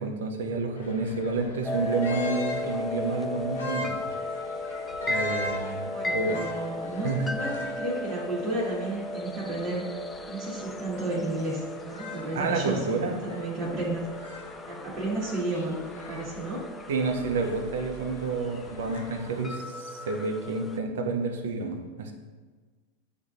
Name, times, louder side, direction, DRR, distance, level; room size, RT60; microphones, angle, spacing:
voice 1, 0.0-4.0 5.0-6.4 7.0-7.3 12.3-13.2 16.9-22.1, right 3 dB, 75° right, 4 dB, 0.6 m, -29 dB
sound 1, 0.8-19.4, left 1 dB, 90° left, 0.7 m, -43 dB
sound 2, 1.6-20.8, left 2 dB, 15° left, 0.3 m, -36 dB
voice 2, 5.9-9.8 10.3-14.0 14.7-16.6, right 2 dB, 30° right, -8 dB, 1.4 m, -32 dB
7.9 x 2.7 x 2.5 m, 1.4 s
hypercardioid pair, 110°, 0 cm